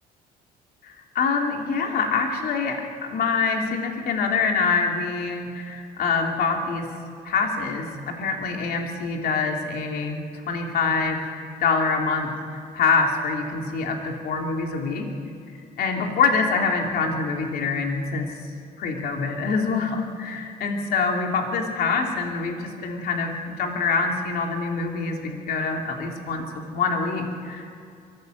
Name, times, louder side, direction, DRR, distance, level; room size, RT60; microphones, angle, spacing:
voice 1, 0.8-6.9 7.2-12.3 12.7-15.1 15.8-18.3 18.8-27.7, left 4 dB, 65° left, 2 dB, 2.9 m, -25 dB
23.0 x 15.5 x 7.9 m, 2.4 s
cardioid pair, 110°, 17 cm